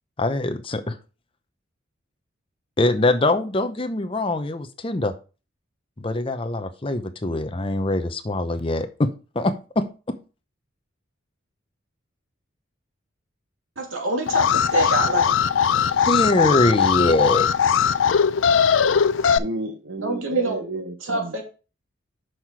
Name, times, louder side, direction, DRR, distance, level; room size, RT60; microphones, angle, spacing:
voice 1, 0.2-0.9 2.8-5.1 6.0-9.1 9.3-10.1 15.7-17.5, left 2 dB, 25° left, 8 dB, 0.7 m, -23 dB
voice 2, 13.8-15.3 20.0-20.6 21.0-21.4, right 2 dB, 85° right, 1 dB, 2.6 m, -26 dB
Alarm, 14.3-19.4, left 7 dB, 75° left, 0.4 m, -19 dB
voice 3, 19.4-21.4, right 2 dB, 70° right, 4 dB, 1.0 m, -32 dB
6.5 x 5.8 x 4.6 m, 0.34 s
head